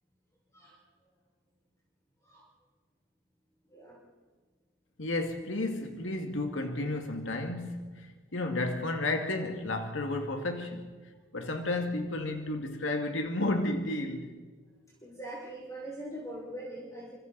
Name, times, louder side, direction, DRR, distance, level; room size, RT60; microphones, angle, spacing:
voice 1, 3.7-4.0 15.0-17.1, right 1 dB, 15° left, 5.7 m, -42 dB
voice 2, 5.0-10.9 11.3-14.4, left 2 dB, 80° left, 2.1 m, -32 dB
28.0 x 26.0 x 4.1 m
head